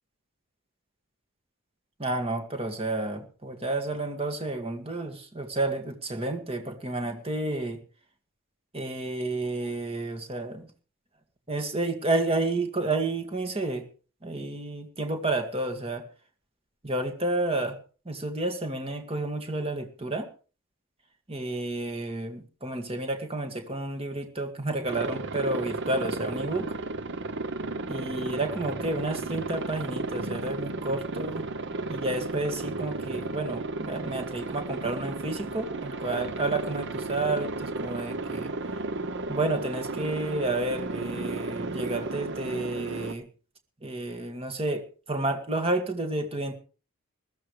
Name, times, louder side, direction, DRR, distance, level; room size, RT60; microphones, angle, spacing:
voice 1, 2.0-7.8 8.7-10.7 11.5-13.9 14.2-16.0 16.8-17.8 18.1-20.3 21.3-26.7 27.9-31.4 31.9-38.5 39.3-43.3 43.8-46.6, right 2 dB, 25° right, 6 dB, 2.2 m, -30 dB
Aircraft, 24.8-43.1, right 3 dB, 55° right, 1.0 m, -34 dB
21.0 x 14.0 x 3.3 m, 0.37 s
head